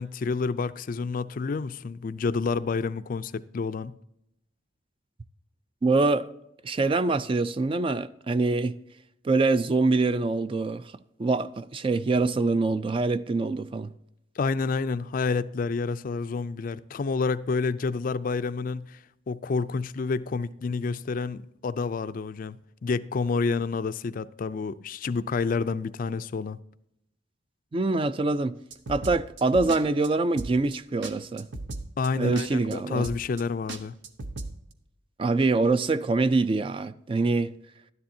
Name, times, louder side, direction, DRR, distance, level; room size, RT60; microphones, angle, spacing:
voice 1, 0.0-4.0 14.4-19.0 19.3-26.6 32.0-33.9, left 4 dB, 50° left, 0.4 m, -29 dB
voice 2, 5.8-6.3 6.6-8.8 9.2-10.9 11.2-13.9 27.7-28.6 28.9-31.5 32.2-33.1 35.2-37.5, right 3 dB, 30° right, 0.3 m, -24 dB
sound 1, 28.7-29.8 30.0-30.1 30.4-30.7 31.0-31.1 31.4-32.1 32.3-32.5 32.7-32.8 33.0-33.4 33.7-34.5, right 2 dB, 80° right, 0.9 m, -36 dB
12.5 x 10.5 x 2.7 m
head